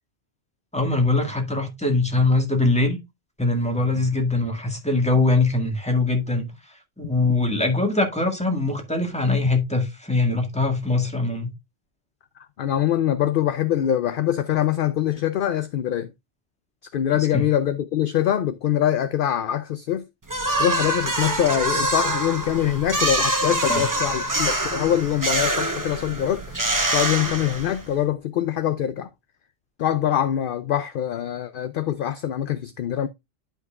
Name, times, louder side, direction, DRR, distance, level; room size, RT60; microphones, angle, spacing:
voice 1, 0.7-3.0 3.4-6.5 7.0-11.5 17.3-17.4 23.7-23.9, left 2 dB, 5° left, 1.8 m, -22 dB
voice 2, 12.6-16.1 16.9-20.1 20.6-26.6 26.9-29.1 29.8-33.1, left 10 dB, 60° left, 0.7 m, -24 dB
sound 1, 20.3-27.9, right 1 dB, 20° right, 1.0 m, -25 dB
11.5 x 5.4 x 2.4 m
omnidirectional pair, 1.1 m